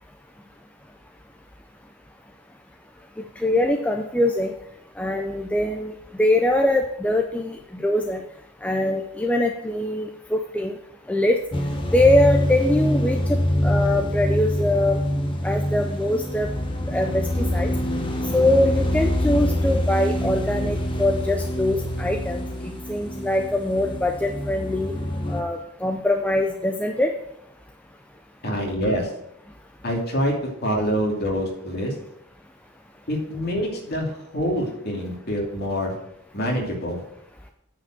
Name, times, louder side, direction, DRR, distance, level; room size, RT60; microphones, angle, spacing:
voice 1, 3.4-4.5 5.0-5.9 6.2-8.2 8.6-10.8 11.1-11.4 11.9-15.0 15.4-16.5 16.9-17.7 18.3-24.9 25.3-27.1, left 1 dB, 5° left, 3 dB, 0.5 m, -23 dB
sound 1, 11.5-25.4, equal, 25° left, 1.1 m, -25 dB
voice 2, 28.4-29.1 29.8-30.3 30.6-31.9 33.1-34.1 34.3-35.9 36.3-37.0, equal, 45° left, -1 dB, 2.7 m, -25 dB
9.2 x 5.0 x 7.7 m, 0.76 s
head